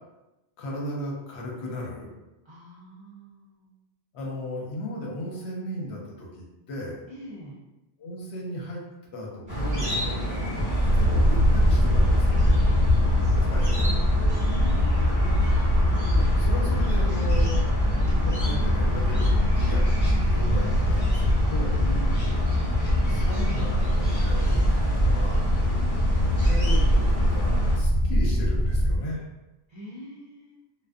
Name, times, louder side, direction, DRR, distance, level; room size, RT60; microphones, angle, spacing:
voice 1, 0.6-2.1 4.1-7.0 8.0-8.8 9.1-12.6 13.5-13.9 16.1-17.9 18.2-19.9 20.2-21.8 23.1-25.5 26.4-29.2, left 1 dB, 70° left, -2 dB, 0.9 m, -36 dB
voice 2, 2.4-3.7 7.1-7.6 13.0-15.6 21.8-22.4 29.7-30.6, left 1 dB, 50° right, -9 dB, 0.3 m, -43 dB
sound 1, 9.5-27.8, right 1 dB, 20° right, 0.9 m, -29 dB
sound 2, 10.8-29.0, left 1 dB, 40° left, 0.9 m, -23 dB
2.5 x 2.2 x 2.3 m, 0.99 s
omnidirectional pair, 1.2 m